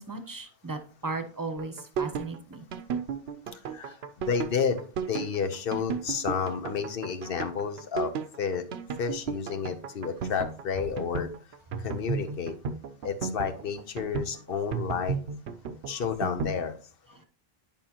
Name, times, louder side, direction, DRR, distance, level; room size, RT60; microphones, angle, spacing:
voice 1, 0.0-2.6 3.9-4.0 15.9-16.0, right 3 dB, 20° right, 7 dB, 0.8 m, -36 dB
sound 1, 1.5-16.6, right 6 dB, 75° right, 0.9 m, -34 dB
voice 2, 3.5-8.6 9.0-11.3 11.8-12.5 13.0-15.2 15.9-16.7, left 6 dB, 60° left, 8 dB, 1.0 m, -31 dB
10.5 x 5.3 x 2.9 m, 0.41 s
omnidirectional pair, 1.1 m